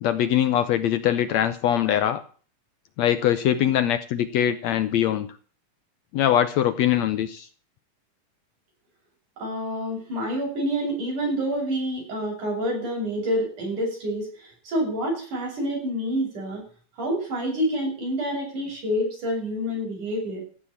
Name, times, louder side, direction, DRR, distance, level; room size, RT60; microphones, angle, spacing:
voice 1, 0.0-2.2 3.0-5.3 6.1-7.5, left 10 dB, 80° left, 12 dB, 1.5 m, -22 dB
voice 2, 9.4-16.6 17.0-20.4, equal, 55° right, 0 dB, 8.6 m, -28 dB
15.5 x 7.4 x 8.5 m, 0.42 s
omnidirectional pair, 4.1 m